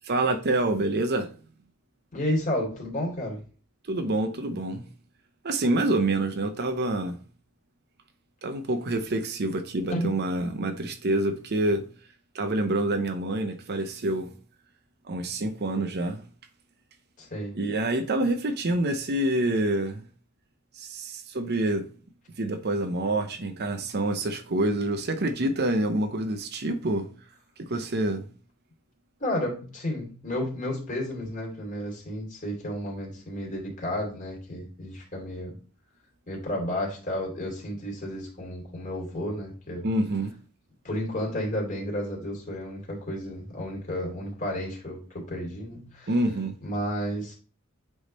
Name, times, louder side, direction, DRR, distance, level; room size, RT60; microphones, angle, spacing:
voice 1, 0.0-1.3 3.9-4.8 5.4-7.2 8.4-11.8 12.3-14.3 15.1-16.2 17.5-20.0 20.8-21.9 22.4-27.1 27.6-28.3 39.8-40.3 46.1-46.5, right 1 dB, 45° right, 0.7 m, -27 dB
voice 2, 2.1-3.4 9.9-10.2 17.2-17.5 29.2-35.6 36.3-39.9 40.8-46.1 46.6-47.3, left 1 dB, 35° left, 2.7 m, -32 dB
8.1 x 3.6 x 4.2 m
head